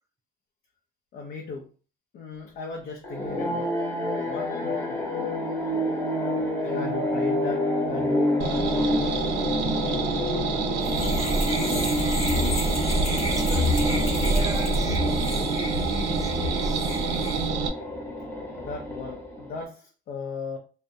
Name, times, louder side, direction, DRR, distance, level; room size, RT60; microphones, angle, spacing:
voice 1, 1.1-1.7 2.1-3.7 4.0-5.1 6.6-9.0 9.5-10.2 18.6-20.6, left 4 dB, 65° left, 0.6 m, -38 dB
sound 1, 3.0-19.6, left 1 dB, 15° left, 0.9 m, -29 dB
sound 2, 8.4-17.7, right 5 dB, 85° right, 0.4 m, -28 dB
sound 3, 10.8-17.5, left 1 dB, 40° left, 1.0 m, -28 dB
voice 2, 13.1-16.9, right 3 dB, 20° right, 0.4 m, -39 dB
2.3 x 2.1 x 2.7 m
cardioid pair, 110°, 17 cm